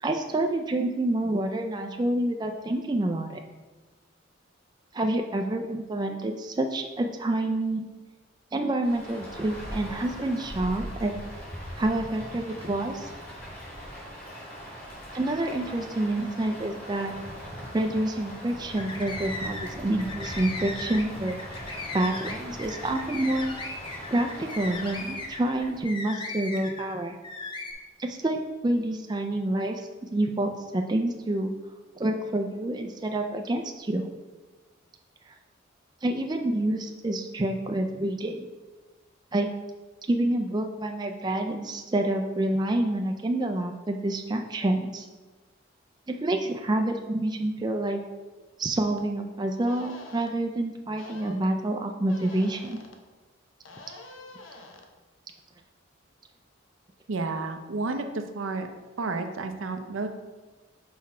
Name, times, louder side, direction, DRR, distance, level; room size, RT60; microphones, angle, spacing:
voice 1, 0.0-3.4 4.9-7.9 8.5-11.1 11.8-13.1 15.1-17.1 17.7-21.4 21.9-23.6 24.1-27.2 28.0-31.5 32.0-34.0 36.0-38.5 39.3-39.5 40.1-45.1 46.1-48.0 48.6-52.8, right 1 dB, 20° right, 4 dB, 0.3 m, -28 dB
Rain, 8.8-25.8, equal, 45° left, 2.1 m, -40 dB
sound 1, 18.7-19.7 20.0-26.9 27.2-27.7, left 2 dB, 25° left, 0.7 m, -37 dB
sound 2, 49.0-49.1 49.6-50.3 51.0-51.4 52.1-53.0 53.6-54.9, left 2 dB, 80° left, 0.8 m, -46 dB
voice 2, 57.1-58.7 59.0-60.1, right 3 dB, 80° right, 6 dB, 0.6 m, -31 dB
5.8 x 4.7 x 4.3 m, 1.3 s
head